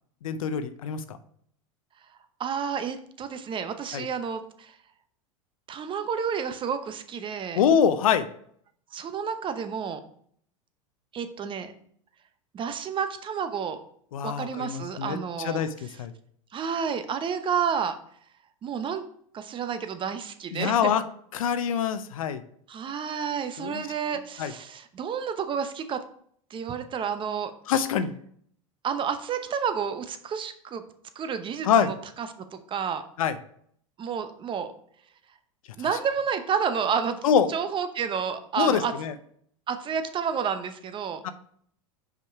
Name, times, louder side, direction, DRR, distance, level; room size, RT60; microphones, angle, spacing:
voice 1, 0.2-1.2 3.9-4.1 7.5-8.3 14.1-15.2 15.4-16.1 20.5-21.0 21.3-22.4 23.6-23.8 24.4-24.5 27.7-28.1 31.6-31.9 33.2-33.4 37.2-37.5 38.6-39.1 41.2-41.3, left 7 dB, 75° left, 11 dB, 0.6 m, -24 dB
voice 2, 2.4-4.8 5.7-7.6 8.9-10.0 11.1-11.7 12.5-13.8 14.2-15.6 16.5-18.0 18.6-19.0 19.3-20.9 22.7-26.0 26.5-27.5 28.8-30.8 31.2-33.0 34.0-34.7 35.8-37.2 37.5-38.9 39.7-41.2, right 7 dB, 30° right, 9 dB, 0.8 m, -30 dB
5.5 x 5.1 x 4.6 m, 0.63 s
hypercardioid pair, 95°, 18 cm